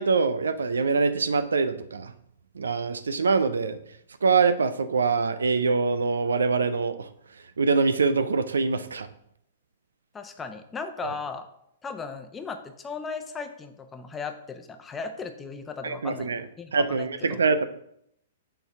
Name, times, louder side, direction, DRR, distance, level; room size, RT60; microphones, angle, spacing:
voice 1, 0.0-2.1 2.5-3.8 4.2-7.1 7.6-9.1 11.0-11.1 15.8-16.4 16.7-17.6, right 4 dB, 85° right, 12 dB, 0.6 m, -24 dB
voice 2, 10.1-11.5 11.8-16.3 16.6-17.4, left 5 dB, 15° left, 7 dB, 0.8 m, -36 dB
6.7 x 4.0 x 6.0 m, 0.74 s
hypercardioid pair, 120°, 0 cm